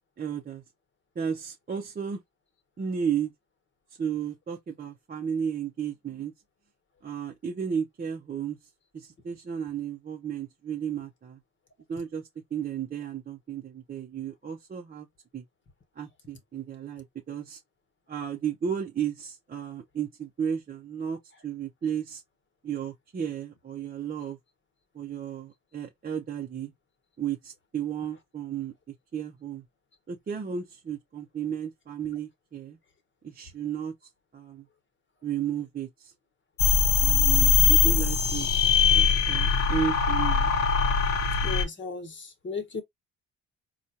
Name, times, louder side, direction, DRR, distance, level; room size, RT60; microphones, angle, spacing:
voice 1, 0.2-0.6 1.2-2.2 2.8-3.3 4.0-6.3 7.0-8.6 8.9-11.4 11.9-12.2 12.5-15.1 15.3-15.4 16.0-17.6 18.1-22.2 22.6-24.4 24.9-26.7 27.2-28.7 29.1-29.6 30.1-32.8 33.2-33.9 34.3-34.6 35.2-36.1 37.0-38.5 38.9-40.5, right 8 dB, 30° right, 0.6 m, -33 dB
sound 1, 36.6-41.6, left 6 dB, 75° left, 1.0 m, -22 dB
voice 2, 41.4-42.8, left 4 dB, 40° left, 1.2 m, -35 dB
4.3 x 2.4 x 2.7 m
cardioid pair, 90°, 30 cm